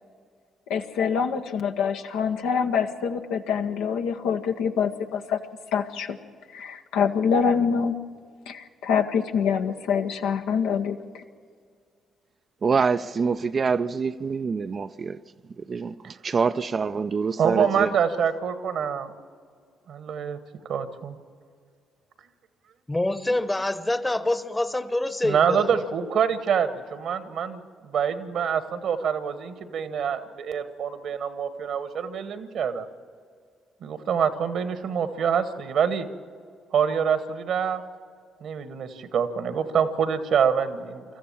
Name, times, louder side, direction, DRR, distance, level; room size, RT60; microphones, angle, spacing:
voice 1, 0.7-5.4 5.7-6.2 6.5-8.0 8.5-11.2, left 6 dB, 70° left, 1.0 m, -25 dB
voice 2, 12.6-15.2 15.6-17.9, right 5 dB, 45° right, 0.5 m, -26 dB
voice 3, 17.4-19.1 19.9-20.4 20.7-21.2 25.2-32.9 33.8-36.1 36.7-37.8 38.4-41.0, right 7 dB, 60° right, 1.3 m, -26 dB
voice 4, 22.9-25.7, left 1 dB, 15° left, 1.1 m, -26 dB
25.5 x 14.0 x 7.3 m
hypercardioid pair, 45°, 0 cm